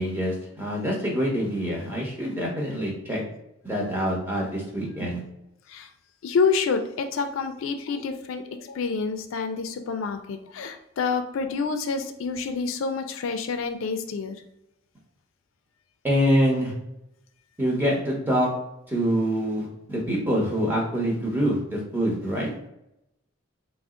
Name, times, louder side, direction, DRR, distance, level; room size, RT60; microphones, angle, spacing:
voice 1, 0.0-3.2 3.6-5.2 16.0-16.7 17.6-18.5 18.9-22.5, equal, 10° right, -3 dB, 0.8 m, -25 dB
voice 2, 6.2-14.4, left 5 dB, 80° left, 7 dB, 0.4 m, -28 dB
3.5 x 2.0 x 3.6 m, 0.84 s
head